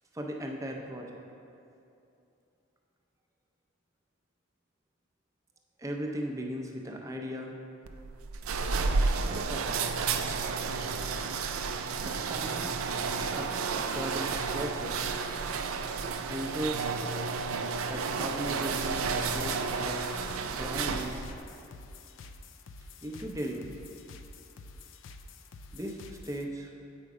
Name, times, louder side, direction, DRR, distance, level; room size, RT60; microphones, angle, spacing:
voice 1, 0.1-1.2 5.8-7.6 9.2-9.8 12.0-12.8 13.3-13.5 13.7-15.1 16.3-16.9 17.8-20.2 20.5-21.2 23.0-23.8 25.7-26.7, equal, 15° right, 1 dB, 0.5 m, -37 dB
sound 1, 7.9-21.4, right 4 dB, 85° right, 0.4 m, -31 dB
sound 2, 18.9-26.4, left 3 dB, 65° left, 0.4 m, -49 dB
8.1 x 5.1 x 4.8 m, 2.7 s
head